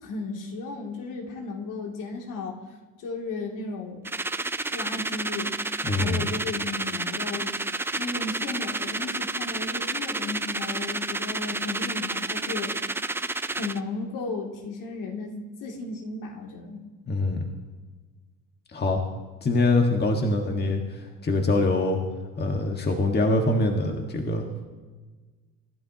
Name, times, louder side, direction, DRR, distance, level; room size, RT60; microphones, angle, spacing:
voice 1, 0.0-2.6 3.0-4.0 4.7-5.5 5.9-7.6 8.0-12.7 13.5-16.8, left 3 dB, 65° left, 0 dB, 2.7 m, -34 dB
sound 1, 4.0-13.8, right 2 dB, 5° right, 0.4 m, -30 dB
voice 2, 5.9-6.3 17.1-17.4 18.7-19.0 19.4-22.0 22.4-24.5, left 2 dB, 30° left, 2 dB, 1.7 m, -24 dB
25.0 x 12.0 x 2.9 m, 1.3 s
supercardioid pair, 85°, 34 cm